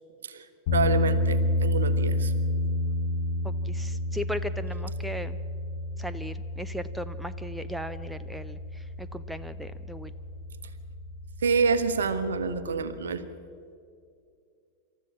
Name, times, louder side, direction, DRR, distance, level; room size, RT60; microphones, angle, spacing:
sound 1, 0.7-13.0, left 2 dB, 50° left, 3.9 m, -30 dB
voice 1, 0.7-2.3 11.4-13.2 13.6-13.8, right 5 dB, 65° right, 11 dB, 1.3 m, -27 dB
voice 2, 3.4-5.4 6.0-8.6 9.0-10.1, equal, 5° right, 13 dB, 0.7 m, -37 dB
27.0 x 13.5 x 7.3 m, 2.4 s
figure-of-eight pair, 90°, 0 cm